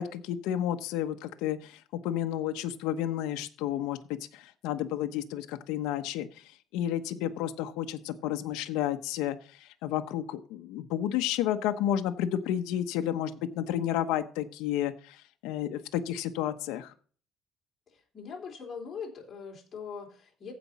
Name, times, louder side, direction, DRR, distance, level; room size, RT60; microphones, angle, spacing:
voice 1, 0.0-4.0 4.3-6.3 6.7-15.2 15.4-16.9, left 11 dB, 80° left, 7 dB, 1.0 m, -31 dB
voice 2, 17.9-20.5, left 6 dB, 25° left, -2 dB, 3.7 m, -41 dB
15.5 x 5.2 x 4.3 m, 0.42 s
cardioid pair, 165°, 0 cm